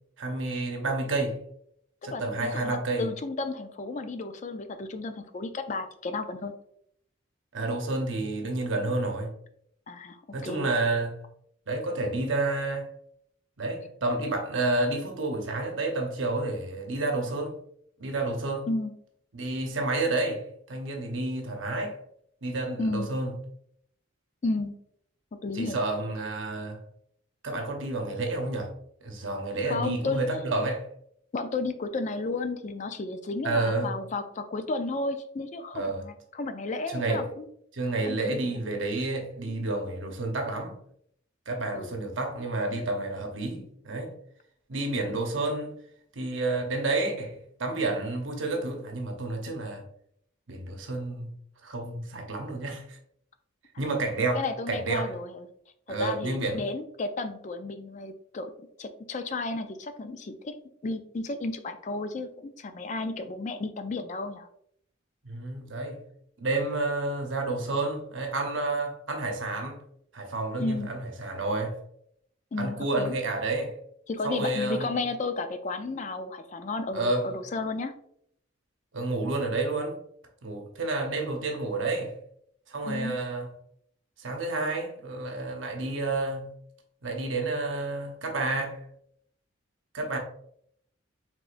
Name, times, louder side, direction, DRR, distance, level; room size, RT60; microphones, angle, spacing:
voice 1, 0.2-1.4 2.0-3.1 7.5-9.3 10.3-11.2 11.7-12.9 13.6-17.5 18.0-18.7 19.3-22.0 22.4-23.3 25.5-26.8 27.4-28.7 29.0-30.8 33.4-33.9 35.7-36.0 36.9-37.2 37.7-40.8 41.5-44.1 44.7-45.8 46.1-49.8 50.5-51.3 51.6-53.0 53.8-55.1 55.9-56.6 65.2-66.1 66.4-69.8 70.1-71.8 72.6-73.7 74.2-74.9 76.9-77.3 78.9-80.0 80.4-82.1 82.7-83.5 84.2-86.5 87.0-88.8 89.9-90.2, right 2 dB, 75° right, 0.9 m, -30 dB
voice 2, 2.1-6.5 9.9-10.7 18.7-18.9 22.8-23.1 24.4-24.8 25.4-25.8 29.6-30.2 31.3-37.5 38.1-38.6 39.4-39.6 41.7-42.0 54.3-55.5 55.9-58.5 58.8-60.5 60.8-64.5 70.6-70.9 72.5-73.2 74.1-77.9 82.9-83.1, left 3 dB, 35° left, 0.3 m, -33 dB
4.9 x 3.6 x 2.5 m
head